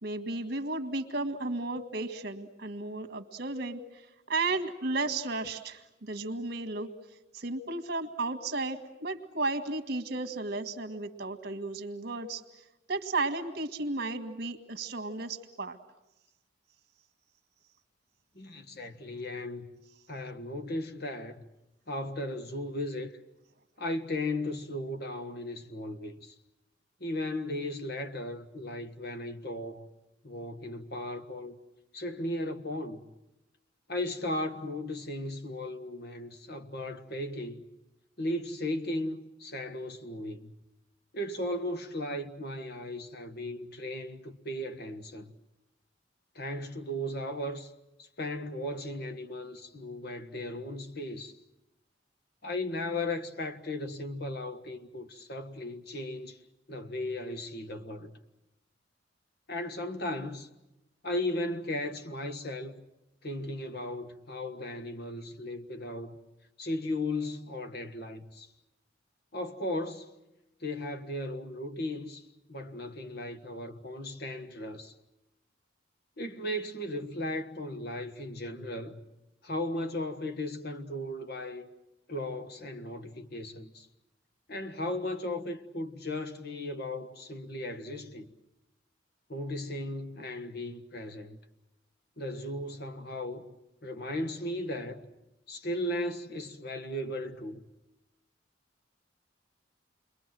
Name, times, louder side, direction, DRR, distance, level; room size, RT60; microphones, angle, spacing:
voice 1, 0.0-6.9 7.3-12.4 12.9-15.8, right 2 dB, 55° right, 1.8 m, -34 dB
voice 2, 18.3-19.7 20.1-21.4 21.9-23.1 23.8-26.3 27.0-29.9 30.2-31.6 31.9-33.0 33.9-37.6 38.2-40.5 41.1-45.3 46.3-47.7 48.0-51.3 52.4-56.4 56.7-58.1 59.5-60.5 61.0-62.8 63.2-66.2 66.6-68.5 69.3-70.1 70.6-74.9 76.2-79.0 79.4-81.7 82.1-83.9 84.5-88.3 89.3-91.4 92.2-93.5 93.8-95.1 95.5-97.6, left 1 dB, 55° left, 1.6 m, -36 dB
29.5 x 22.0 x 7.7 m
head